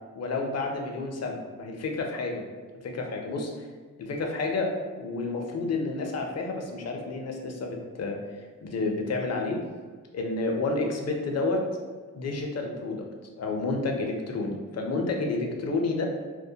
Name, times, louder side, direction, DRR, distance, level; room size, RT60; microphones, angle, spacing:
voice 1, 0.2-2.4 2.8-3.5 4.0-8.2 8.6-9.6 10.1-11.6 12.1-13.1 13.4-16.0, left 3 dB, 50° left, 2 dB, 0.5 m, -30 dB
2.1 x 2.1 x 2.7 m, 1.5 s
cardioid pair, 60°, 34 cm